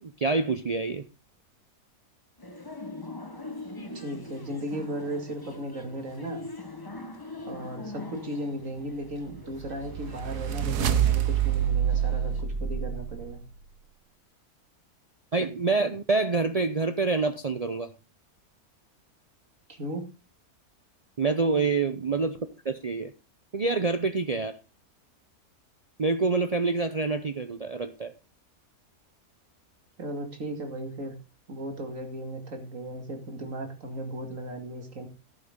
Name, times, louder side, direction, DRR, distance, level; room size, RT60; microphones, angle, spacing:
voice 1, 0.0-1.0 15.3-17.9 21.2-22.4 22.6-23.1 23.5-24.6 26.0-28.1, right 3 dB, 70° right, 8 dB, 0.3 m, -26 dB
sound 1, 2.4-12.4, left 2 dB, 15° left, 1.1 m, -43 dB
voice 2, 3.9-6.4 7.5-13.4 19.7-20.1 30.0-31.1 31.5-35.1, right 1 dB, 55° right, 4 dB, 2.6 m, -36 dB
sound 2, 9.3-13.6, right 10 dB, 90° right, 1.4 m, -27 dB
11.5 x 9.5 x 3.7 m, 0.28 s
omnidirectional pair, 1.6 m